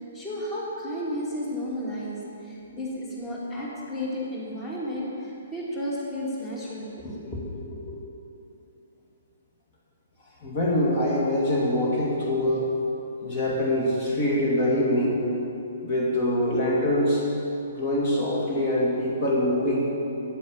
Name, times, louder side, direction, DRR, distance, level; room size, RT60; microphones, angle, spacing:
voice 1, 0.1-8.0, equal, 15° left, -5 dB, 2.5 m, -33 dB
voice 2, 10.4-12.7 13.2-15.2 15.8-17.2 17.7-19.9, left 1 dB, 40° left, -4 dB, 2.4 m, -24 dB
10.5 x 9.2 x 7.3 m, 2.8 s
figure-of-eight pair, 120°, 0 cm